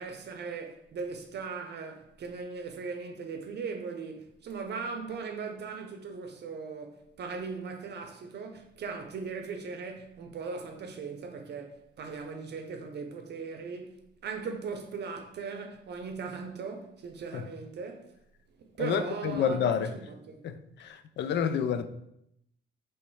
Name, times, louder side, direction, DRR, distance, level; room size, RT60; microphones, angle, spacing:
voice 1, 0.0-18.2 18.6-20.4, right 5 dB, 60° right, 0.6 m, -39 dB
voice 2, 19.3-19.9 20.4-21.8, left 8 dB, 60° left, 0.4 m, -29 dB
3.2 x 3.1 x 4.6 m
cardioid pair, 90°, 20 cm